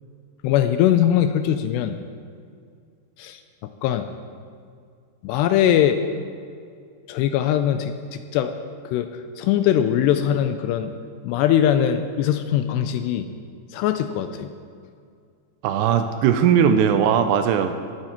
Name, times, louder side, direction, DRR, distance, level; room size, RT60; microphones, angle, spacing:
voice 1, 0.4-2.0 3.2-3.4 3.8-4.1 5.2-6.0 7.1-8.5 8.9-9.1 9.4-10.9 11.2-13.3 13.7-14.5, left 10 dB, 85° left, 9 dB, 2.5 m, -21 dB
voice 2, 15.6-17.9, right 8 dB, 80° right, 8 dB, 2.6 m, -19 dB
19.0 x 7.9 x 4.4 m, 2.2 s
omnidirectional pair, 5.1 m